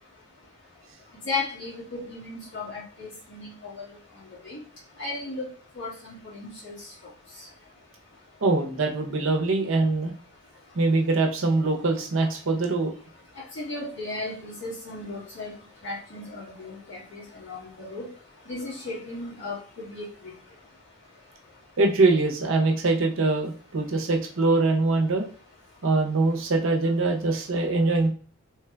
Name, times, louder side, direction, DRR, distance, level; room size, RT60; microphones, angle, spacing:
voice 1, 1.2-3.9 4.4-4.6 5.0-5.5 5.7-6.7 13.3-15.5 15.8-18.1 18.5-20.3, left 3 dB, 55° left, -7 dB, 1.7 m, -35 dB
voice 2, 8.4-10.1 10.7-12.9 21.8-25.3 25.8-28.1, right 3 dB, 70° right, 2 dB, 0.7 m, -23 dB
3.1 x 2.3 x 3.3 m, 0.42 s
head